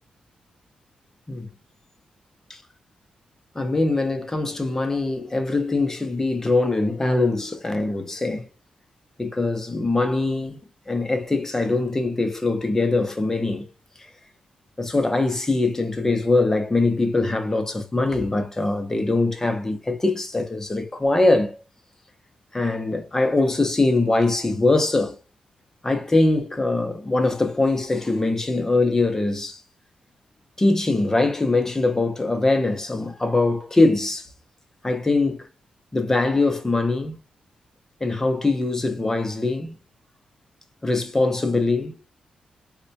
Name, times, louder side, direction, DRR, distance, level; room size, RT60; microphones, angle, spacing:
voice 1, 3.5-8.5 9.2-10.6 10.9-13.7 14.8-21.6 22.5-25.2 25.8-29.6 30.6-34.3 34.8-35.5 35.9-37.2 38.0-39.7 40.8-42.0, left 2 dB, 15° left, 0.6 m, -22 dB
4.1 x 2.1 x 2.7 m
cardioid pair, 110°, 3 cm